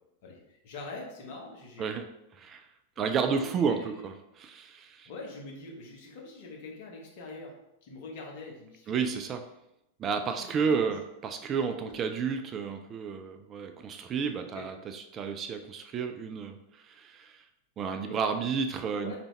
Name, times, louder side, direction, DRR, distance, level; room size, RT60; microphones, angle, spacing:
voice 1, 0.2-1.9 2.9-4.1 5.0-9.0 10.3-11.0 11.8-11.9 14.5-14.7 17.9-18.3 19.0-19.2, left 3 dB, 50° left, -1 dB, 1.0 m, -44 dB
voice 2, 3.0-5.1 8.9-9.5 10.0-17.4 17.8-19.2, right 6 dB, 30° right, 7 dB, 0.3 m, -31 dB
3.9 x 3.3 x 3.2 m, 0.86 s
figure-of-eight pair, 90°, 0 cm